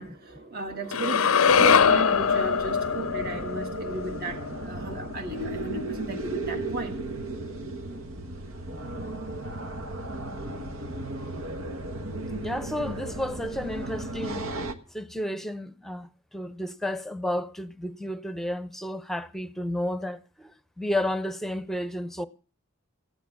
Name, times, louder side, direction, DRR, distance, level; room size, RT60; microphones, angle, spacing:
voice 1, 0.0-7.0 7.3-7.4 7.9-8.1 8.5-9.1 9.5-9.6 11.4-11.6, right 3 dB, 50° right, 1.6 m, -36 dB
sound 1, 0.9-5.1, left 6 dB, 90° left, 0.6 m, -23 dB
sound 2, 1.5-14.7, right 1 dB, 80° right, 1.5 m, -35 dB
voice 2, 12.4-14.4 14.9-22.3, left 1 dB, ahead, 0.7 m, -32 dB
15.5 x 10.0 x 7.1 m
head